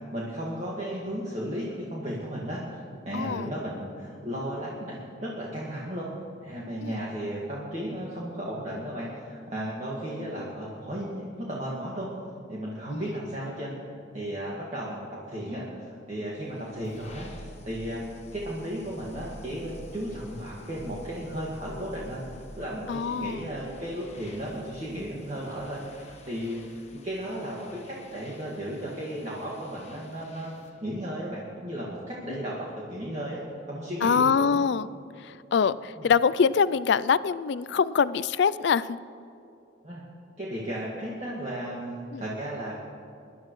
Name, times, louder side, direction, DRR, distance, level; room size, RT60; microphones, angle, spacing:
voice 1, 0.1-6.1 6.4-12.1 12.5-18.1 18.3-30.5 30.8-34.6 36.0-36.1 39.8-40.0 40.4-42.7, equal, 35° right, -6 dB, 1.9 m, -35 dB
voice 2, 3.1-3.5 6.8-7.0 12.9-13.0 22.9-23.5 34.0-34.9 35.2-39.0 42.1-42.2, left 6 dB, 60° left, 17 dB, 0.3 m, -24 dB
sound 1, 16.2-30.8, left 1 dB, 35° left, 1.3 m, -48 dB
23.5 x 11.5 x 3.2 m, 2.7 s
head